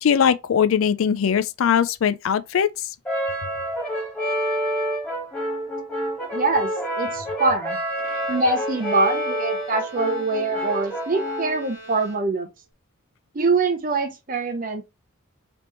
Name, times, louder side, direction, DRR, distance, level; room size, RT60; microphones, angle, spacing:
voice 1, 0.0-2.9, left 7 dB, 80° left, 0.4 m, -20 dB
Brass instrument, 3.0-11.6, equal, 5° left, 1.3 m, -28 dB
voice 2, 6.3-6.7 7.0-7.8 8.3-12.5 13.3-14.8, right 3 dB, 45° right, 0.7 m, -24 dB
Bowed string instrument, 8.0-12.7, right 1 dB, 65° left, 1.6 m, -44 dB
3.4 x 3.0 x 2.9 m
head